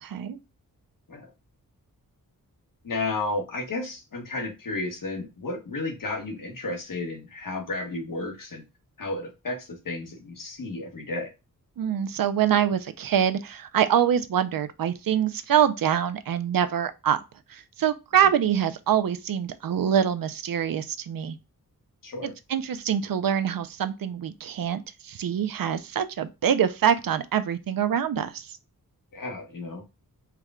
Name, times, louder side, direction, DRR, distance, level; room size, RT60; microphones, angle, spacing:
voice 1, 0.0-0.4 11.8-17.2 17.5-21.4 22.2-28.5, right 9 dB, 70° right, 0.5 m, -25 dB
voice 2, 2.8-8.6 9.0-11.3 22.0-22.3 29.1-29.8, left 2 dB, 60° left, 1.2 m, -32 dB
4.6 x 2.2 x 3.6 m
wide cardioid pair, 130°, 36 cm